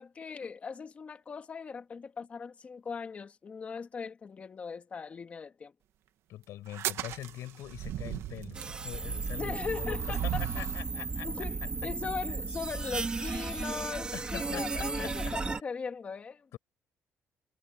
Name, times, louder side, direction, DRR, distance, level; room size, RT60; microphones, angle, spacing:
voice 1, 0.0-5.7 9.3-10.6 11.2-16.6, left 5 dB, 30° left, 2.2 m, -39 dB
voice 2, 6.3-10.0 10.2-11.3 14.1-15.3 16.5-16.6, left 14 dB, 85° left, 5.1 m, -43 dB
sound 1, 6.7-10.9, right 12 dB, 70° right, 1.7 m, -37 dB
sound 2, 8.5-15.6, right 4 dB, 20° right, 2.0 m, -35 dB
cardioid pair, 170°, 5 cm